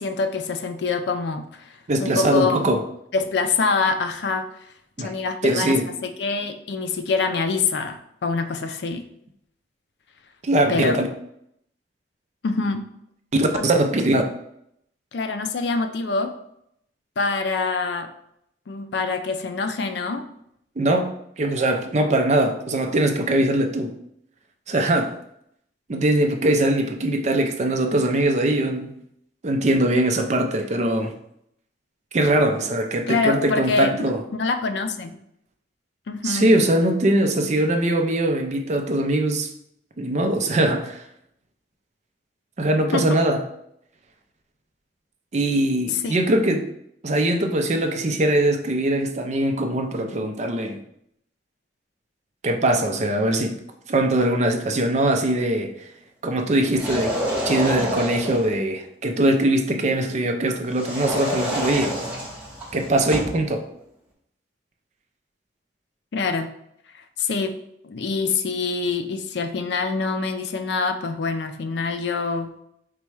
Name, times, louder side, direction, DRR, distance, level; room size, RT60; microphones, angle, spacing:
voice 1, 0.0-1.7 2.0-2.7 3.1-4.5 5.0-5.8 6.0-9.0 10.7-11.0 12.4-12.8 13.5-13.6 15.1-16.3 17.2-18.1 18.7-20.3 33.1-35.2 36.1-36.5 42.9-43.0 45.9-46.2 66.1-66.5 67.2-67.5 67.8-72.5, left 4 dB, 65° left, 7 dB, 0.4 m, -25 dB
voice 2, 1.9-2.8 5.0-5.1 5.4-5.9 10.4-11.1 13.3-14.2 20.8-21.1 21.4-23.9 24.7-25.2 25.9-28.9 29.4-31.1 32.1-34.2 36.2-39.5 40.0-41.0 42.6-43.4 45.3-46.7 47.0-50.8 52.4-53.5 53.9-55.7 56.2-57.1 57.4-61.9 62.7-63.6, right 1 dB, 40° right, 4 dB, 0.5 m, -21 dB
sound 1, 56.7-58.5 60.7-63.4, equal, 10° right, 1.0 m, -28 dB
4.1 x 2.3 x 4.6 m, 0.74 s
head